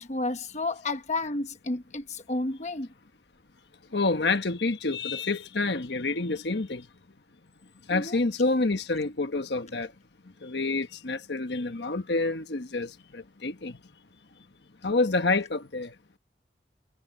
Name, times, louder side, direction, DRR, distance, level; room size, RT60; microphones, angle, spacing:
voice 1, 0.0-2.9 7.9-8.2, left 2 dB, 40° left, 1.1 m, -31 dB
voice 2, 3.9-6.9 7.9-9.9 10.4-13.8 14.8-15.9, left 3 dB, 75° left, 1.3 m, -28 dB
head